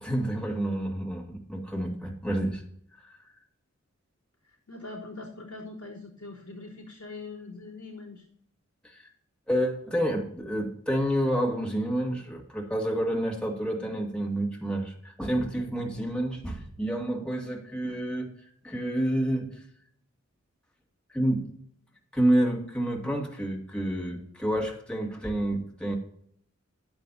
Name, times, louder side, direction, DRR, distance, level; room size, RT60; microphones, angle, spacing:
voice 1, 0.0-2.6 3.0-3.2 8.8-9.1 9.5-19.6 21.1-21.5 22.1-26.0, right 1 dB, 5° left, 0 dB, 2.1 m, -29 dB
voice 2, 4.4-8.3, left 3 dB, 85° left, -7 dB, 3.5 m, -42 dB
11.0 x 9.5 x 2.7 m, 0.64 s
wide cardioid pair, 50°, 29 cm